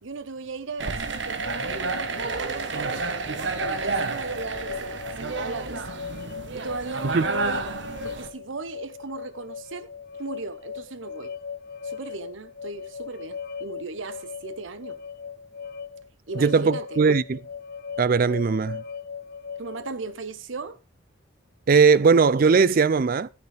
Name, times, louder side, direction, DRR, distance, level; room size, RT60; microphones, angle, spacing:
voice 1, 0.0-5.8 6.5-7.6 8.0-9.9 10.2-11.3 11.8-15.0 16.3-17.0 19.6-20.8, right 4 dB, 85° right, 0.9 m, -37 dB
sound 1, 0.8-8.3, right 3 dB, 65° right, 1.2 m, -30 dB
sound 2, 1.4-20.1, left 6 dB, 50° left, 0.4 m, -39 dB
voice 2, 16.4-17.4 18.0-18.8 21.7-23.3, right 5 dB, 50° right, 0.4 m, -19 dB
12.0 x 9.3 x 3.4 m
head